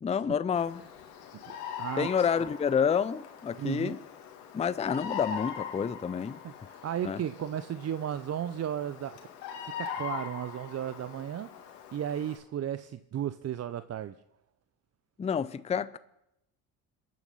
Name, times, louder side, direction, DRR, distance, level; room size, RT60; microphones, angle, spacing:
voice 1, 0.0-0.8 2.0-4.0 4.5-6.4 7.0-7.2 15.2-16.0, left 7 dB, 15° left, 0.5 m, -29 dB
Bird vocalization bird call bird song, 0.6-12.4, left 7 dB, 85° left, 2.3 m, -42 dB
voice 2, 1.3-2.3 3.6-4.0 6.4-9.2 9.6-11.5 11.9-14.2, right 10 dB, 35° right, 0.6 m, -35 dB
27.0 x 9.3 x 5.6 m
hypercardioid pair, 75°, 45 cm